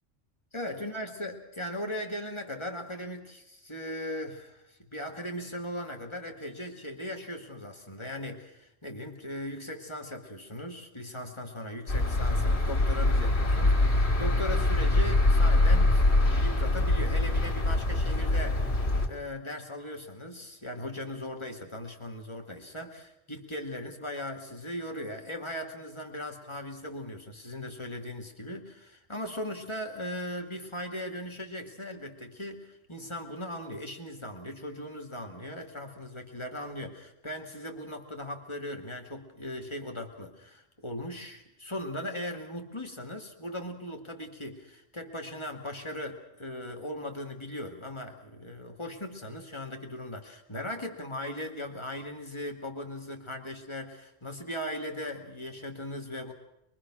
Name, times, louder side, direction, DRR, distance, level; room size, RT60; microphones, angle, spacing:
voice 1, 0.5-18.7 19.1-56.3, left 1 dB, 25° left, 3 dB, 2.4 m, -38 dB
sound 1, 11.9-19.1, left 2 dB, 65° left, 2.5 m, -24 dB
24.5 x 22.5 x 6.3 m, 0.85 s
omnidirectional pair, 1.2 m